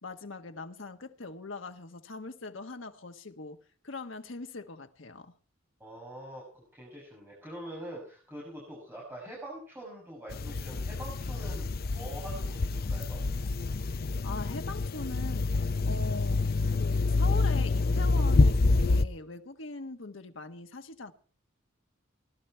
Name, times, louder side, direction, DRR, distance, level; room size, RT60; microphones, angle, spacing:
voice 1, 0.0-5.3 14.2-21.1, left 3 dB, 70° left, 1.2 m, -42 dB
voice 2, 5.8-13.2, right 1 dB, 10° right, 6.6 m, -44 dB
sound 1, 10.3-19.0, left 3 dB, 50° left, 0.6 m, -27 dB
18.5 x 12.0 x 4.4 m
head